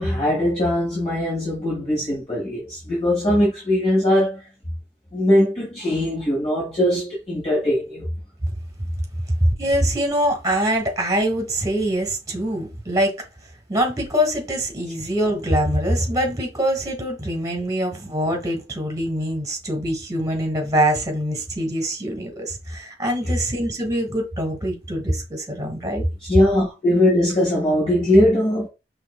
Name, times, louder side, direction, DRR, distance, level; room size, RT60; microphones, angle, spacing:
voice 1, 0.0-4.5 5.1-8.1 26.2-28.7, left 1 dB, 35° left, 1.9 m, -20 dB
voice 2, 9.4-13.1 13.7-26.1, equal, 20° right, 1.4 m, -23 dB
5.8 x 2.9 x 2.3 m
head